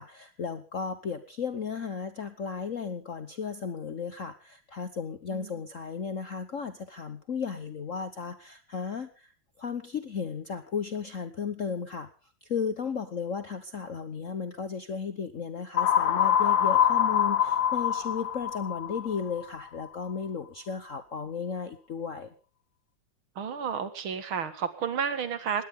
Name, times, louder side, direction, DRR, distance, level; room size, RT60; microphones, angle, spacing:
voice 1, 0.0-9.3 9.6-12.1 12.4-22.3, left 6 dB, 45° left, 10 dB, 1.2 m, -35 dB
sound 1, 15.8-19.6, left 9 dB, 65° left, 1.9 m, -25 dB
voice 2, 23.4-25.6, right 7 dB, 85° right, 11 dB, 2.6 m, -31 dB
20.0 x 17.5 x 3.7 m, 0.36 s
omnidirectional pair, 2.2 m